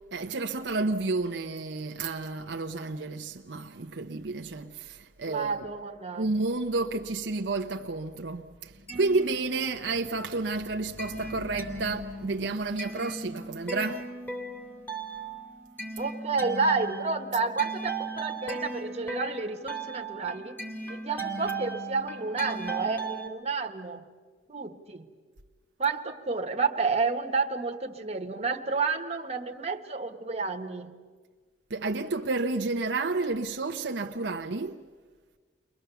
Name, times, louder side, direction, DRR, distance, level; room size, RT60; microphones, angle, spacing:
voice 1, 0.1-5.7 6.2-14.1 31.7-34.8, right 3 dB, 75° right, 0.8 m, -31 dB
voice 2, 5.3-6.3 16.0-20.6 20.9-24.1 24.5-25.1 25.8-31.0, right 4 dB, 35° right, 1.5 m, -30 dB
sound 1, 8.7-10.1 10.4-23.3, right 3 dB, 10° left, 2.3 m, -37 dB
29.5 x 23.0 x 6.9 m
head